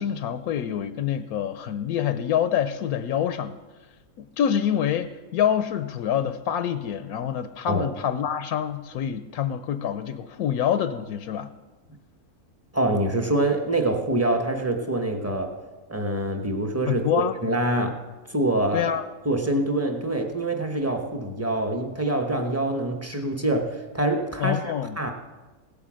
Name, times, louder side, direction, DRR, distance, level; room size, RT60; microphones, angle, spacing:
voice 1, 0.0-3.5 4.2-11.5 16.9-17.4 18.7-19.0 24.4-25.0, left 9 dB, 80° left, 11 dB, 1.1 m, -26 dB
voice 2, 12.7-15.5 15.9-18.0 18.3-18.9 19.2-25.1, right 1 dB, 10° right, 4 dB, 0.9 m, -25 dB
16.5 x 8.5 x 6.2 m, 1.2 s
omnidirectional pair, 1.6 m